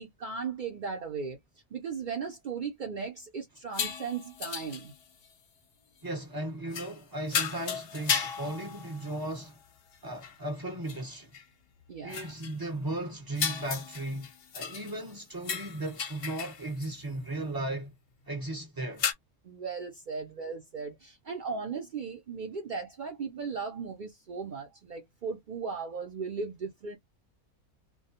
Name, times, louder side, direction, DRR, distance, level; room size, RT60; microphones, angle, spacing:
voice 1, 0.0-1.4 1.7-4.9 11.9-12.3 19.4-27.0, right 5 dB, 65° right, 0.4 m, -37 dB
sound 1, 3.7-5.3 6.7-7.0 7.3-9.5 9.9-10.0 10.2-10.4 10.9-11.0 11.3-11.4 12.1-12.5 13.3-15.1 15.4-16.9 19.0-19.1, left 7 dB, 55° left, 0.7 m, -35 dB
voice 2, 6.0-9.6 10.0-11.3 12.0-17.9 18.3-19.1, right 1 dB, 15° right, 1.0 m, -36 dB
2.3 x 2.2 x 2.7 m
omnidirectional pair, 1.6 m